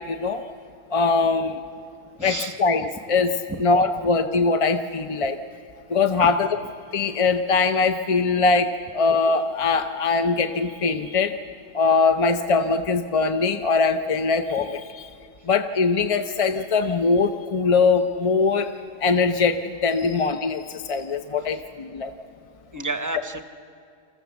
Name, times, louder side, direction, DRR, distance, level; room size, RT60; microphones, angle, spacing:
voice 1, 0.1-0.4 0.9-1.6 2.2-3.3 3.6-5.4 5.9-6.5 6.9-11.4 11.7-15.1 15.5-18.7 19.0-22.1, left 4 dB, 40° left, 8 dB, 0.5 m, -22 dB
voice 2, 2.2-2.6 3.5-3.6 6.2-6.3 22.7-23.4, right 2 dB, 20° right, 8 dB, 0.8 m, -30 dB
26.5 x 14.5 x 7.0 m, 2.4 s
omnidirectional pair, 1.2 m